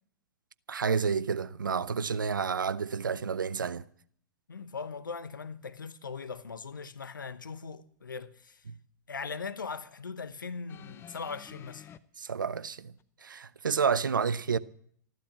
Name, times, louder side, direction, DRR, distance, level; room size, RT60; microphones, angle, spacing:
voice 1, 0.7-3.8 12.2-12.9 13.2-14.6, right 6 dB, 85° right, 0.7 m, -30 dB
voice 2, 4.5-8.6 9.1-11.9, left 5 dB, 85° left, 1.0 m, -40 dB
sound 1, 10.7-12.0 13.0-13.1, left 9 dB, 25° left, 0.7 m, -50 dB
14.0 x 12.0 x 7.4 m
hypercardioid pair, 110°, 10 cm